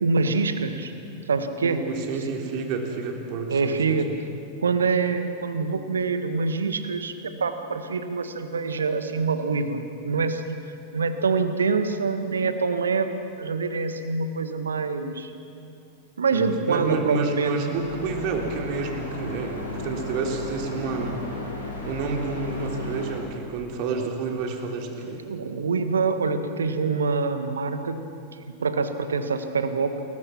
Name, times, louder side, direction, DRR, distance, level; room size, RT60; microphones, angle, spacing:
voice 1, 0.0-0.9 1.3-1.8 3.5-4.1 4.6-10.6 10.9-13.1 13.4-15.3 16.2-17.6 25.0-28.0 28.6-30.1, right 4 dB, 70° right, 9 dB, 1.6 m, -25 dB
voice 2, 1.6-4.0 16.3-21.2 21.8-25.2, right 4 dB, 45° right, 2 dB, 3.5 m, -29 dB
sound 1, 17.7-23.2, left 2 dB, 80° left, 6.0 m, -35 dB
29.5 x 21.5 x 6.0 m, 2.5 s
figure-of-eight pair, 90°, 0 cm